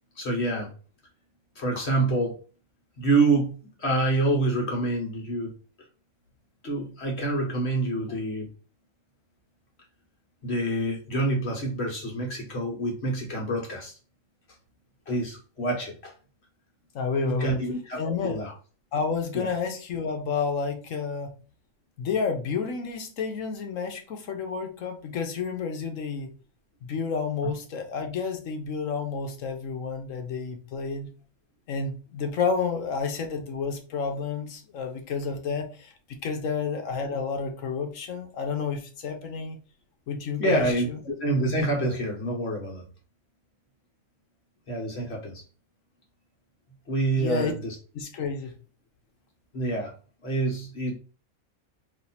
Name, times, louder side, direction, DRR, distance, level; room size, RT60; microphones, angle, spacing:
voice 1, 0.2-0.7 1.5-2.3 3.0-5.5 6.6-8.5 10.4-14.0 15.1-16.1 17.2-18.5 19.3-19.5 27.4-27.5 40.4-42.8 44.7-45.4 46.9-47.7 49.5-49.9 50.2-51.0, right 2 dB, 50° left, -1 dB, 1.6 m, -27 dB
voice 2, 16.9-17.6 18.0-18.4 18.9-21.4 22.0-26.3 26.8-31.1 31.7-39.6 40.1-41.0 47.2-47.5 47.9-48.5, left 5 dB, 70° left, 5 dB, 1.1 m, -30 dB
3.3 x 2.8 x 4.1 m, 0.37 s
omnidirectional pair, 1.5 m